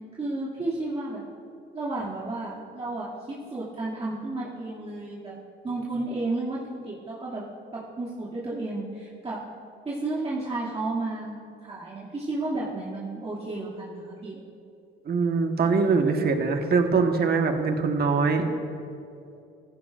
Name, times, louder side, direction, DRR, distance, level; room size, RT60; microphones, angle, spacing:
voice 1, 0.1-1.2 1.7-5.3 5.6-7.4 7.7-9.4 9.8-11.3 11.6-14.4, right 2 dB, 30° right, -9 dB, 2.5 m, -32 dB
voice 2, 15.0-18.5, right 4 dB, 50° right, 4 dB, 1.4 m, -23 dB
15.5 x 15.5 x 2.5 m, 2.6 s
cardioid pair, 90°, 20 cm